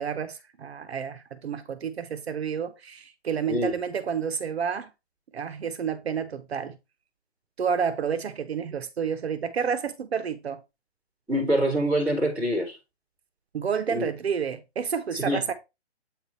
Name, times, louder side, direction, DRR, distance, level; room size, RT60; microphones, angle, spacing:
voice 1, 0.0-4.9 5.3-6.8 7.6-10.6 13.5-15.5, right 7 dB, 70° right, 1.0 m, -30 dB
voice 2, 11.3-12.8 13.9-14.1 15.1-15.4, equal, 5° right, 2.4 m, -25 dB
8.3 x 3.7 x 4.1 m
hypercardioid pair, 175°, 33 cm